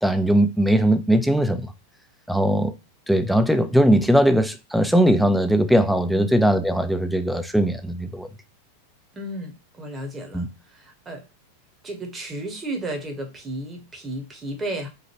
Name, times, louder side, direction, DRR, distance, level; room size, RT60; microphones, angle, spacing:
voice 1, 0.0-1.7 2.3-2.7 3.1-8.3 10.3-10.5, equal, ahead, 0.3 m, -19 dB
voice 2, 9.1-11.2 11.8-14.9, right 1 dB, 15° right, 0.8 m, -33 dB
3.0 x 2.1 x 3.0 m
figure-of-eight pair, 90°, 0 cm